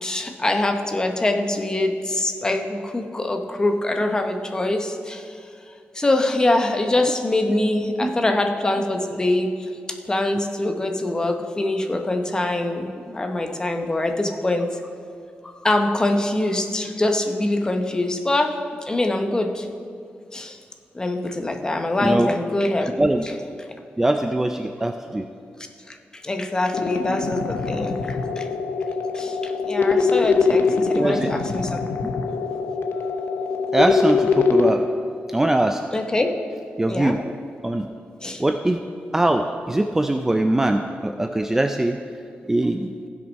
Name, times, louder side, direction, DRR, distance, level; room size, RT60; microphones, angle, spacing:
voice 1, 0.0-5.4 5.9-14.7 15.4-19.7 20.3-20.6 20.9-22.9 25.9-28.5 29.1-32.1 35.9-36.3 36.9-37.2 38.2-38.4, left 2 dB, 20° left, 5 dB, 0.8 m, -24 dB
voice 2, 24.0-25.3 30.9-31.3 33.7-34.8 35.3-35.8 36.8-37.2 37.6-37.9 38.4-38.8 39.1-42.0 42.5-42.9, right 1 dB, 10° right, 5 dB, 0.3 m, -21 dB
sound 1, 26.7-34.7, left 4 dB, 80° left, 0.8 m, -23 dB
15.5 x 6.1 x 5.3 m, 2.3 s
wide cardioid pair, 160°, 4 cm